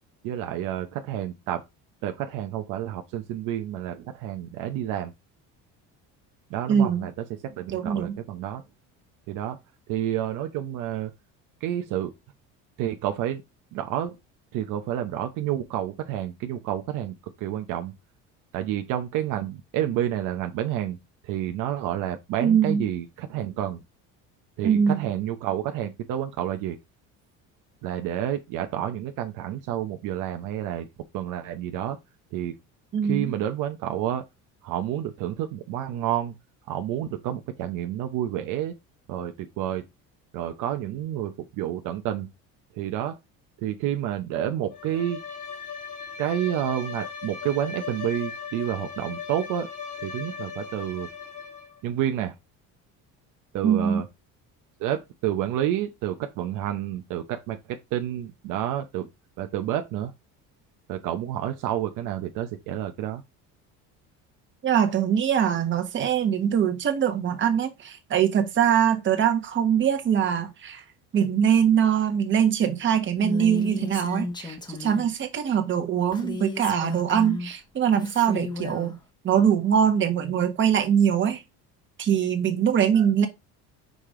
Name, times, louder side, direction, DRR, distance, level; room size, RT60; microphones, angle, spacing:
voice 1, 0.2-1.7 2.0-5.1 6.5-7.1 7.4-8.6 9.3-9.6 9.9-11.1 11.6-12.1 12.8-13.4 13.7-14.2 14.5-17.9 18.5-21.0 21.2-23.8 24.6-26.8 27.8-30.9 31.1-32.0 32.3-32.5 33.0-34.2 34.6-36.4 36.7-38.7 39.1-39.8 40.3-42.3 42.7-43.2 43.6-45.2 46.2-49.7 50.0-51.1 51.8-52.3 53.5-54.0 54.8-59.1 59.4-60.1 60.9-63.2 82.9-83.1, right 11 dB, 70° right, 0.8 m, -29 dB
voice 2, 6.7-7.1 7.7-8.2 22.4-22.9 24.6-25.0 32.9-33.3 53.6-54.0 64.6-70.8 71.1-79.0 79.2-81.4 82.0-83.3, right 8 dB, 35° right, 1.3 m, -22 dB
Bowed string instrument, 44.7-51.8, left 6 dB, 60° left, 2.5 m, -38 dB
Female speech woman speaking, 73.2-75.1 76.1-77.5 78.0-78.9, left 2 dB, 15° left, 1.1 m, -34 dB
5.3 x 4.9 x 3.7 m
cardioid pair, 145°, 33 cm